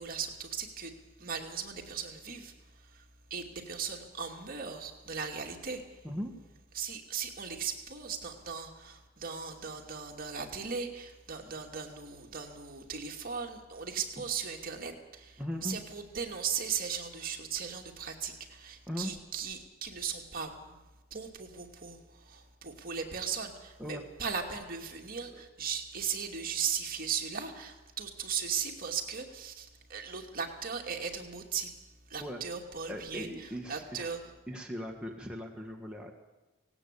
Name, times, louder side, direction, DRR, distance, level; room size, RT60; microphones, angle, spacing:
voice 1, 0.0-3.0 3.3-6.1 6.7-20.8 21.1-31.8 32.1-34.2, right 6 dB, 45° right, 2 dB, 2.6 m, -38 dB
voice 2, 15.4-15.8 18.9-19.1 23.8-24.0 25.3-25.4 32.2-32.4 32.9-34.1 34.5-36.1, equal, 5° right, 0 dB, 1.7 m, -39 dB
18.0 x 17.5 x 8.5 m, 1.1 s
head